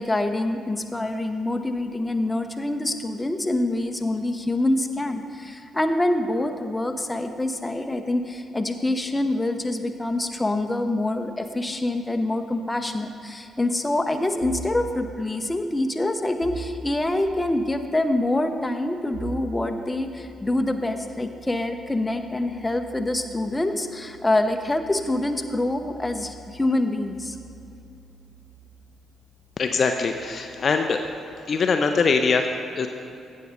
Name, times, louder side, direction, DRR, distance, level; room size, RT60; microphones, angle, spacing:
voice 1, 0.0-27.4, left 1 dB, 15° left, 6 dB, 0.8 m, -25 dB
sound 1, 14.4-14.8 16.4-17.3 19.1-30.5, right 3 dB, 50° right, 2.3 m, -44 dB
voice 2, 29.6-31.0 31.5-32.9, left 4 dB, 45° left, 5 dB, 0.5 m, -22 dB
16.0 x 6.3 x 4.1 m, 2.7 s
figure-of-eight pair, 40°, 0 cm